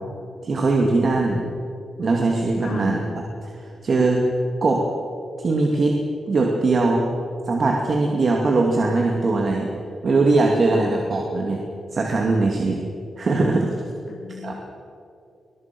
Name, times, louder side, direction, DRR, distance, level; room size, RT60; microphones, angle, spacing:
voice 1, 0.4-1.4 2.0-3.0 3.6-4.3 4.6-4.9 5.4-6.0 6.3-7.1 7.5-9.7 10.0-11.6 11.9-12.8 13.2-13.7 14.4-14.5, right 3 dB, 45° right, 1 dB, 2.5 m, -20 dB
voice 2, 2.6-3.0 10.7-10.9 14.1-14.5, left 5 dB, 50° left, -2 dB, 3.2 m, -33 dB
24.0 x 21.0 x 6.1 m, 2.7 s
wide cardioid pair, 125°, 0 cm